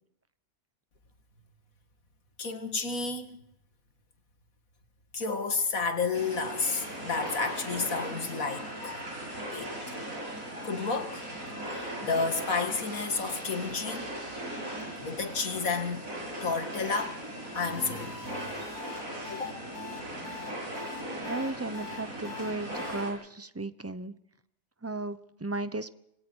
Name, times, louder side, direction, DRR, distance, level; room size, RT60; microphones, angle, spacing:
voice 1, 2.4-3.4 5.1-9.0 9.5-9.9 10.6-11.3 11.6-14.1 15.0-16.1 16.4-17.2 17.5-18.2 19.3-19.5, left 4 dB, 80° left, 2.4 m, -31 dB
sound 1, 6.1-23.1, right 1 dB, 80° right, 8.4 m, -38 dB
sound 2, 17.6-23.0, left 6 dB, 65° left, 2.2 m, -43 dB
voice 2, 21.2-24.1 24.8-25.9, right 2 dB, 15° right, 0.6 m, -35 dB
27.0 x 20.5 x 4.7 m
omnidirectional pair, 1.4 m